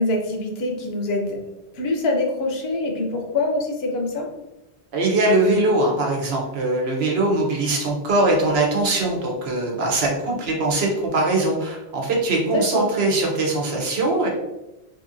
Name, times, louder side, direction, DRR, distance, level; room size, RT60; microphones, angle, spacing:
voice 1, 0.0-1.4 1.7-4.3 12.4-12.9, left 2 dB, 75° left, 2 dB, 0.9 m, -24 dB
voice 2, 4.9-14.3, right 2 dB, 75° right, -1 dB, 1.0 m, -21 dB
2.9 x 2.8 x 2.5 m, 0.98 s
omnidirectional pair, 1.1 m